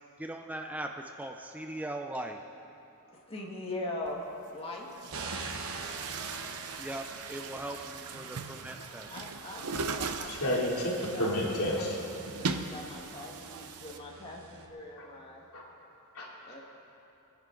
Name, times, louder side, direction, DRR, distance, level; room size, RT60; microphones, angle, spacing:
voice 1, 0.2-2.4 6.8-9.2, right 1 dB, 5° right, 3 dB, 0.5 m, -39 dB
voice 2, 3.1-4.9 9.1-10.6 11.0-11.4 11.7-15.4 16.5-16.6, left 2 dB, 25° left, -2 dB, 1.7 m, -41 dB
Chatter / Gurgling / Tap, 4.1-4.2 4.9-14.0, right 4 dB, 90° right, 0.8 m, -39 dB
sound 1, 5.1-14.7, right 3 dB, 70° right, 1.3 m, -46 dB
voice 3, 10.3-12.0 15.0-15.1 15.5-15.6 16.1-16.6, equal, 70° left, -4 dB, 3.0 m, -31 dB
24.0 x 10.5 x 3.9 m, 2.9 s
head